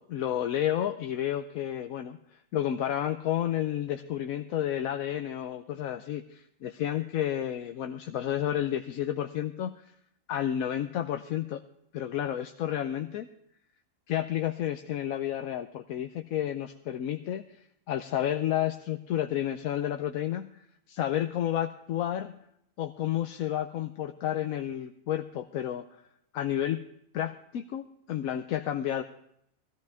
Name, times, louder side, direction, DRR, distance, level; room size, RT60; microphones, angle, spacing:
voice 1, 0.0-9.9 10.3-11.6 11.9-13.3 14.1-22.4 22.8-26.0 26.3-26.8 27.1-29.0, left 11 dB, 85° left, 7 dB, 1.1 m, -31 dB
17.0 x 14.0 x 3.4 m, 0.73 s
omnidirectional pair, 1.4 m